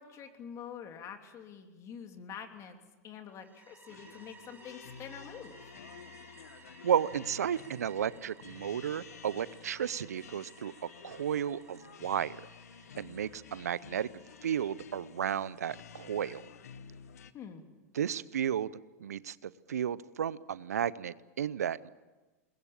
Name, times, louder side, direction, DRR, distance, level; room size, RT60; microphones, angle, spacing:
voice 1, 0.0-2.8 3.0-5.7 17.3-17.6, left 7 dB, 35° left, 6 dB, 3.1 m, -46 dB
sound 1, 3.3-16.0, right 5 dB, 20° right, 6.5 m, -58 dB
sound 2, 3.9-17.3, left 7 dB, 80° left, 1.2 m, -52 dB
voice 2, 6.8-10.7 11.0-12.4 13.0-14.1 14.4-16.4 17.9-18.7 19.0-21.9, right 9 dB, 85° right, 19 dB, 0.7 m, -33 dB
22.5 x 20.5 x 8.8 m, 1.2 s
hypercardioid pair, 105°, 8 cm